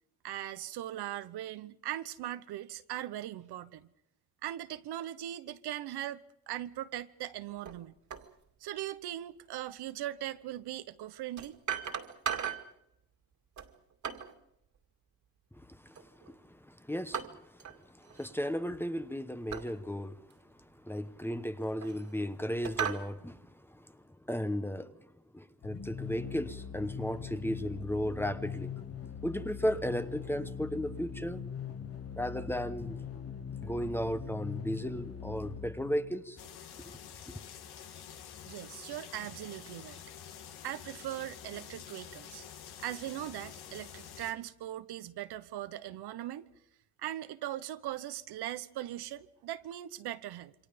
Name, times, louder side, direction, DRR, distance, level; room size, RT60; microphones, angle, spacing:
voice 1, 0.2-3.9 4.4-7.9 8.6-11.6 37.9-38.0 38.5-40.0 40.6-42.5 42.8-46.5 47.0-50.5, right 13 dB, 80° right, 1.2 m, -40 dB
sound 1, 7.7-7.8 8.1-8.3 10.1-10.2 11.4-12.7 13.6-14.4 16.0-16.3 17.1-17.8 18.0-18.3 19.5-19.7 20.3-20.4 21.4-22.2 22.6-23.1, right 8 dB, 50° right, 2.3 m, -37 dB
voice 2, 15.5-25.1 25.3-28.7 29.2-31.4 32.2-33.0 33.6-36.4 36.8-37.0 37.3-37.4, equal, 5° left, 1.0 m, -35 dB
sound 2, 25.6-36.3, left 7 dB, 35° left, 1.8 m, -42 dB
sound 3, 36.4-44.3, left 9 dB, 75° left, 2.1 m, -48 dB
28.0 x 24.5 x 5.2 m
cardioid pair, 135°, 39 cm